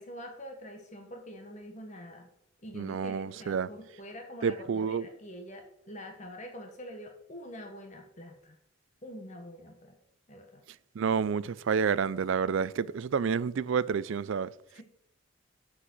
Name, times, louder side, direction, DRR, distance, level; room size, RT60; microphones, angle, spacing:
voice 1, 0.0-2.3 2.6-8.6 9.0-10.0 10.3-10.6 14.7-14.8, equal, 35° left, 1.2 m, -45 dB
voice 2, 2.7-3.7 4.4-5.1 11.0-14.5, right 6 dB, 65° right, 0.4 m, -29 dB
7.6 x 6.5 x 6.1 m
head